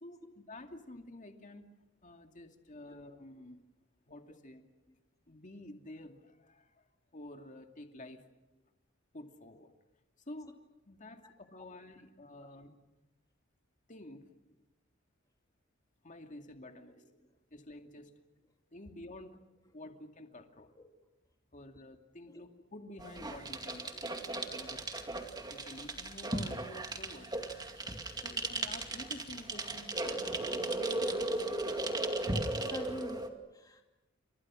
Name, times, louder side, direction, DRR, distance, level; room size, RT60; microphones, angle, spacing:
voice 1, 0.0-1.7 2.0-3.6 4.1-4.7 5.3-6.8 7.1-8.2 9.1-9.7 10.3-10.5 10.9-12.8 13.9-14.3 16.0-17.0 17.5-18.1 18.7-19.4 19.7-20.7 21.5-24.0 24.4-24.8 25.5-27.3 28.2-31.9, left 1 dB, 40° left, 2.4 m, -50 dB
voice 2, 16.9-17.3 20.8-20.9 21.7-21.8 22.3-22.4 23.9-24.1 32.7-33.8, left 1 dB, 20° left, 2.4 m, -47 dB
sound 1, 23.0-33.3, right 2 dB, 20° right, 2.3 m, -36 dB
29.0 x 26.0 x 6.3 m
head